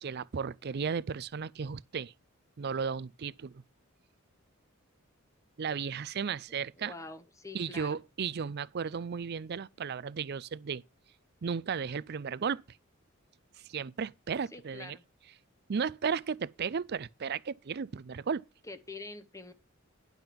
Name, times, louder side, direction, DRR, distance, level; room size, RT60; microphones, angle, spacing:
voice 1, 0.0-2.1 2.6-3.6 5.6-6.9 7.5-10.8 11.4-12.6 13.6-15.0 15.7-18.4, right 6 dB, 50° right, 0.4 m, -34 dB
voice 2, 6.8-8.0 14.5-15.0 18.7-19.5, left 3 dB, 15° left, 0.9 m, -45 dB
10.5 x 5.3 x 5.8 m
head